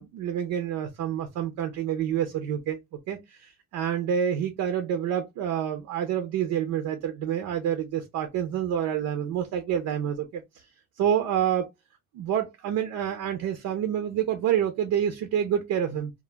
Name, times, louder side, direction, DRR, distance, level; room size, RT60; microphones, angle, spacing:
voice 1, 0.0-2.8 3.1-10.4 11.0-11.7 12.1-16.1, right 9 dB, 85° right, 0.6 m, -28 dB
2.3 x 2.1 x 3.1 m
cardioid pair, 90°, 30 cm